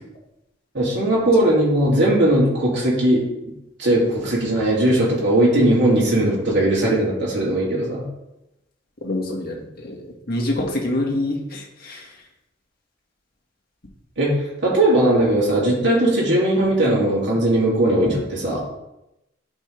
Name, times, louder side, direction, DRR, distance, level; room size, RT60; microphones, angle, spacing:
voice 1, 0.7-3.5 3.8-8.0 14.2-18.6, right 1 dB, 65° right, -5 dB, 2.6 m, -19 dB
voice 2, 9.0-12.0, left 1 dB, 55° left, -1 dB, 1.8 m, -26 dB
11.0 x 5.3 x 3.3 m, 0.91 s
head